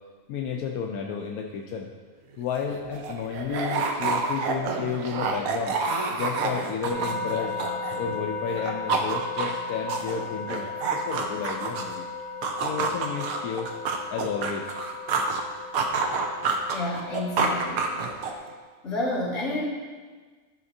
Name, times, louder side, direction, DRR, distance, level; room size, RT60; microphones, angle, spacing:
voice 1, 0.3-1.9 2.4-5.7 6.1-7.6 8.0-12.1 12.6-13.7 14.1-14.7, left 6 dB, 85° left, 1 dB, 1.1 m, -32 dB
sound 1, 2.3-2.4 2.7-8.2 8.5-12.0 12.4-15.4 15.7-18.5, right 4 dB, 75° right, 1.2 m, -28 dB
sound 2, 6.9-18.3, left 3 dB, 25° right, 2.7 m, -36 dB
voice 2, 16.7-17.9 18.8-19.6, left 1 dB, 50° left, -7 dB, 2.2 m, -29 dB
12.0 x 5.8 x 2.7 m, 1.4 s
omnidirectional pair, 1.6 m